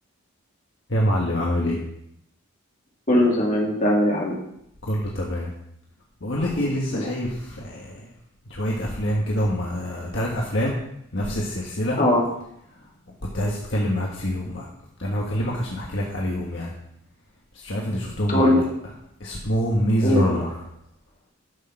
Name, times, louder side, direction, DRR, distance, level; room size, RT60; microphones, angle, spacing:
voice 1, 0.9-1.8 4.8-5.5 6.2-8.1 8.5-10.8 11.1-12.0 13.3-14.7 15.0-16.7 17.5-18.6 19.2-20.5, equal, 60° left, -3 dB, 1.6 m, -25 dB
voice 2, 3.1-4.4 6.4-7.1 12.0-12.2 18.3-18.6 20.0-20.4, left 1 dB, 35° left, -3 dB, 3.0 m, -21 dB
11.5 x 6.5 x 5.9 m, 0.77 s
head